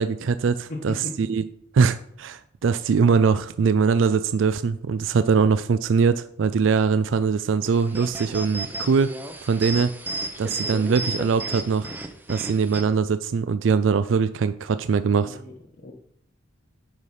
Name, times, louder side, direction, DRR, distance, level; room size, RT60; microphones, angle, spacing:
voice 1, 0.0-1.4 1.7-9.1 9.4-9.9 10.4-11.9 12.3-15.4, right 5 dB, 70° right, 13 dB, 0.4 m, -22 dB
voice 2, 0.7-1.1 15.2-15.9, left 2 dB, 55° left, -3 dB, 1.2 m, -36 dB
sound 1, 7.6-12.8, right 2 dB, 10° right, 0.7 m, -33 dB
9.6 x 4.9 x 5.6 m, 0.68 s
head